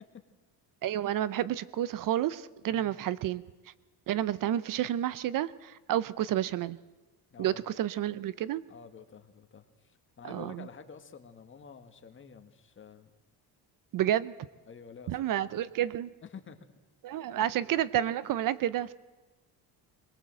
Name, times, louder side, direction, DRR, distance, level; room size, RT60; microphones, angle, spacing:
voice 1, 0.8-3.4 4.1-6.8 7.4-8.6 10.2-10.6 13.9-14.3 15.1-16.1 17.0-18.9, right 12 dB, 55° right, 17 dB, 0.7 m, -30 dB
voice 2, 7.3-7.6 8.7-13.1 14.7-15.6 16.3-16.6 17.3-17.5, left 6 dB, 30° left, 7 dB, 1.8 m, -50 dB
22.0 x 21.5 x 7.7 m, 1.2 s
cardioid pair, 150°, 40 cm